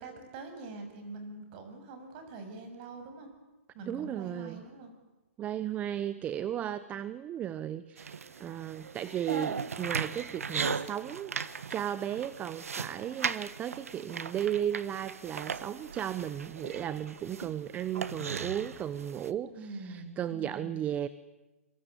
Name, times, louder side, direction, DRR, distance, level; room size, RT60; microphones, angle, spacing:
voice 1, 0.0-3.3 3.7-4.9 19.5-20.7, right 3 dB, 35° right, 6 dB, 7.3 m, -44 dB
voice 2, 3.9-4.6 5.4-11.3 11.7-21.1, right 10 dB, 20° right, 15 dB, 0.8 m, -35 dB
sound 1, 8.0-19.3, right 6 dB, 75° right, 1.5 m, -38 dB
27.0 x 24.5 x 8.3 m, 1.1 s
hypercardioid pair, 135°, 8 cm